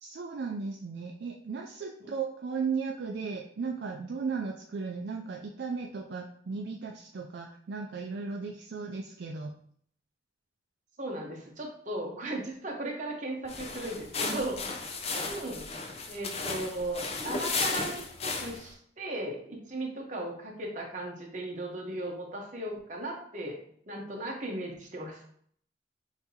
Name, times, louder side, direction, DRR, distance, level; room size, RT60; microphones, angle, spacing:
voice 1, 0.0-9.5, right 5 dB, 60° right, 1 dB, 0.4 m, -36 dB
voice 2, 11.0-14.6 15.1-15.6 16.1-23.6 23.9-25.2, right 1 dB, 45° right, 0 dB, 1.0 m, -37 dB
sound 1, 13.5-18.7, left 4 dB, 35° left, 0.5 m, -34 dB
5.8 x 2.7 x 2.8 m, 0.62 s
head